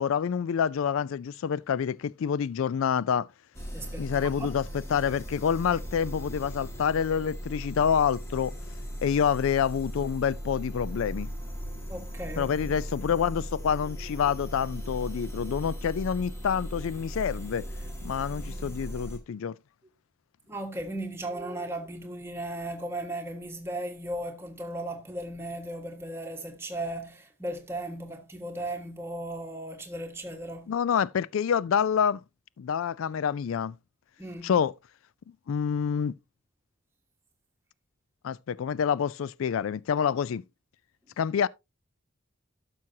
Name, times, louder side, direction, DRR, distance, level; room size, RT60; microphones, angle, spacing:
voice 1, 0.0-3.3 4.0-8.5 9.0-11.3 12.4-17.6 18.0-19.6 30.7-32.2 32.6-33.7 34.4-34.7 35.5-36.1 38.2-40.4 41.2-41.5, left 7 dB, 75° left, 0.3 m, -27 dB
sound 1, 3.5-19.2, equal, 15° left, 1.8 m, -38 dB
voice 2, 3.7-4.5 5.7-5.8 11.9-12.7 18.5-18.8 20.5-30.7 34.2-34.5, right 1 dB, 10° right, 1.5 m, -36 dB
12.0 x 6.1 x 2.7 m
head